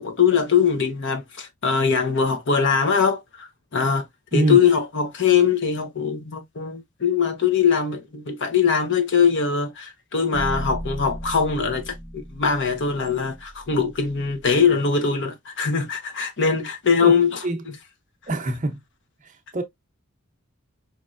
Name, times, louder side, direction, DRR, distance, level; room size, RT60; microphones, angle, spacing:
voice 1, 0.0-4.0 4.3-17.4, left 6 dB, 55° left, 0.9 m, -21 dB
sound 1, 10.3-14.5, equal, 35° left, 1.3 m, -35 dB
voice 2, 18.3-18.8 19.5-19.6, right 2 dB, 35° right, 0.7 m, -23 dB
5.1 x 3.2 x 2.4 m
head